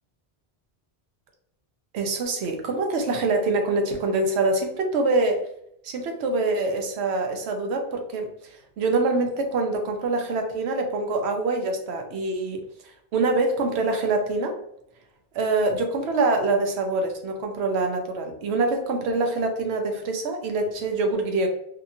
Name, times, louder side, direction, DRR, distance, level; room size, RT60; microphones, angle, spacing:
voice 1, 1.9-5.4 5.8-14.5 15.3-21.5, right 3 dB, 85° right, 4 dB, 0.9 m, -25 dB
2.7 x 2.6 x 2.5 m, 0.72 s
omnidirectional pair, 1.1 m